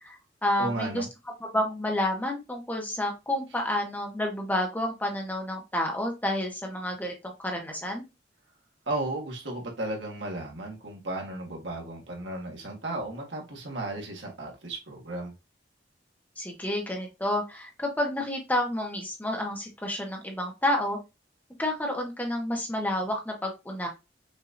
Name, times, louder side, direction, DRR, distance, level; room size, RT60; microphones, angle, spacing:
voice 1, 0.0-1.1 1.5-8.0 16.4-21.0 21.6-23.9, left 1 dB, 10° left, 1.0 m, -30 dB
voice 2, 0.6-1.1 8.9-15.3, right 2 dB, 80° right, 1.6 m, -34 dB
5.7 x 2.7 x 2.6 m
head